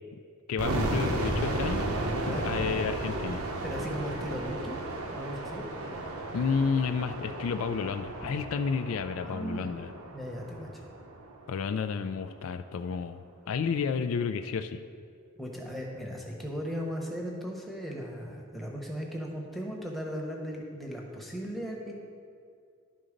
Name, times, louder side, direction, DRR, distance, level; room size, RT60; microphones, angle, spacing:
voice 1, 0.5-1.8 2.3-3.4 6.3-9.9 11.5-14.8, left 5 dB, 70° left, 9 dB, 0.3 m, -31 dB
sound 1, 0.6-11.5, right 1 dB, 85° right, 0.9 m, -34 dB
voice 2, 2.2-2.5 3.6-4.8 5.1-5.7 9.2-9.8 10.1-10.8 15.4-21.9, equal, ahead, -2 dB, 0.9 m, -37 dB
11.0 x 3.9 x 5.1 m, 2.3 s
head